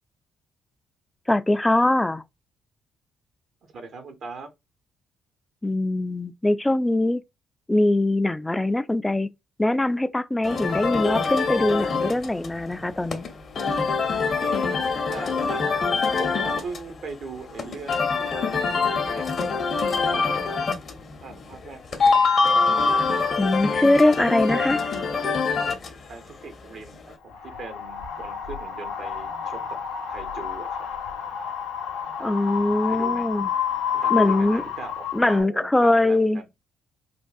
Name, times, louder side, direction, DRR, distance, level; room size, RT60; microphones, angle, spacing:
voice 1, 1.3-2.2 5.6-7.2 7.7-9.3 9.6-13.3 23.4-24.8 32.2-33.5 34.1-34.6 35.1-36.4, left 2 dB, 15° left, 0.3 m, -22 dB
voice 2, 3.6-4.5 15.0-15.6 16.2-18.2 18.6-19.5 19.9-20.7 21.2-22.2 26.1-29.6 30.1-30.8 32.8-33.3 34.0-36.4, right 4 dB, 55° right, 0.7 m, -40 dB
sound 1, 10.4-27.1, left 4 dB, 50° left, 0.7 m, -24 dB
Wind, 27.3-35.4, left 8 dB, 80° left, 0.7 m, -30 dB
3.5 x 2.3 x 2.3 m
hypercardioid pair, 45°, 0 cm